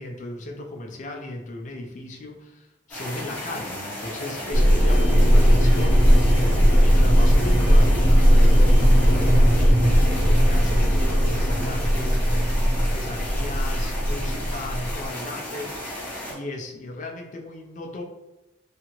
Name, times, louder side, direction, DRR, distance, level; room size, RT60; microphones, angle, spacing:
voice 1, 0.0-6.3 6.8-15.8 16.3-18.0, left 2 dB, 40° left, 2 dB, 0.4 m, -36 dB
sound 1, 2.9-16.3, left 1 dB, 10° left, 0.8 m, -35 dB
sound 2, 4.5-15.0, equal, 60° left, 0.9 m, -18 dB
2.8 x 2.4 x 2.9 m, 1.0 s
head